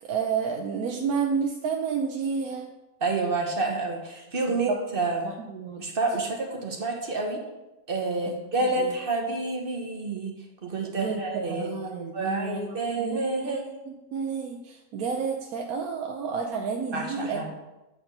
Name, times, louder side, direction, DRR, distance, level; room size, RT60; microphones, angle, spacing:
voice 1, 0.0-2.7 4.7-4.8 5.2-5.9 8.8-8.9 10.9-11.2 11.5-13.6 13.9-17.6, right 5 dB, 70° right, 1 dB, 1.2 m, -30 dB
voice 2, 3.0-5.3 5.8-7.4 7.9-10.3 10.6-11.7 12.1-13.7 16.9-17.5, right 3 dB, 40° right, 1 dB, 1.2 m, -28 dB
8.8 x 4.4 x 5.3 m, 1.0 s
omnidirectional pair, 1.6 m